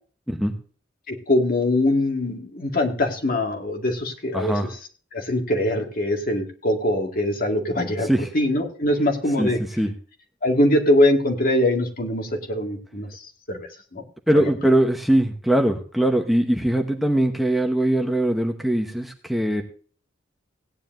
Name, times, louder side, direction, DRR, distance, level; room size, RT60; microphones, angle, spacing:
voice 1, 1.1-4.8 5.1-9.6 10.4-14.0 14.3-14.4, left 1 dB, 50° left, 3 dB, 2.0 m, -23 dB
voice 2, 4.3-4.7 8.1-8.3 9.4-9.5 9.8-9.9 14.3-19.6, right 1 dB, ahead, 3 dB, 0.9 m, -21 dB
17.0 x 9.8 x 2.6 m, 0.41 s
head